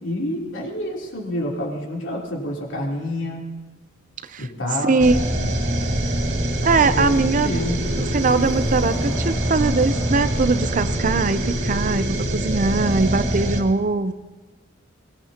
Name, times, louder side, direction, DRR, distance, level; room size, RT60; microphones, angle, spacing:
voice 1, 0.0-3.4 4.4-5.1 6.8-7.9, left 1 dB, 65° left, -2 dB, 3.5 m, -28 dB
voice 2, 4.8-5.5 6.6-7.6 8.0-14.1, right 3 dB, 40° right, 12 dB, 0.6 m, -21 dB
sound 1, 5.0-13.6, right 1 dB, 60° right, 2.5 m, -24 dB
Car passing by / Accelerating revving vroom, 5.9-11.9, equal, 10° left, 1.9 m, -37 dB
23.0 x 20.0 x 2.9 m, 1.3 s
head